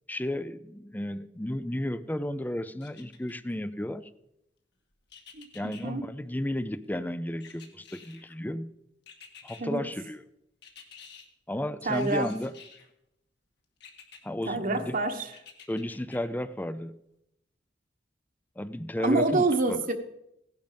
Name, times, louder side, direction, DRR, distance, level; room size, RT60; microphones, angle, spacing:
voice 1, 0.1-4.1 5.5-8.7 9.4-10.2 11.5-12.5 14.2-15.0 15.7-16.9 18.6-19.8, left 1 dB, 10° left, 14 dB, 0.6 m, -33 dB
sound 1, 2.8-3.6 5.1-5.8 7.4-8.4 9.1-9.6 10.6-11.2 11.9-12.9 13.8-14.2 15.3-16.2 16.6-16.7, left 7 dB, 65° left, 2.1 m, -50 dB
voice 2, 5.3-6.0 9.6-9.8 11.8-12.3 14.5-15.3 19.0-19.9, right 2 dB, 50° right, 4 dB, 1.4 m, -27 dB
16.5 x 11.0 x 5.2 m, 0.83 s
head